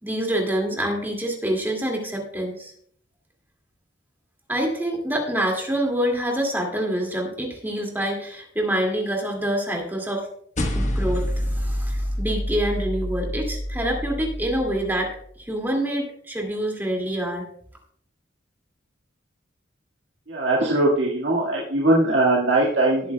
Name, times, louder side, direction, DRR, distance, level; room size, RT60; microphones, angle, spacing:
voice 1, 0.0-2.7 4.5-10.3 10.7-15.1 15.4-17.5, right 1 dB, 10° right, 1 dB, 2.2 m, -26 dB
sound 1, 10.6-15.2, equal, 40° left, 1.2 m, -27 dB
voice 2, 20.3-23.1, right 2 dB, 75° right, -5 dB, 1.8 m, -20 dB
18.0 x 8.4 x 2.2 m, 0.64 s
head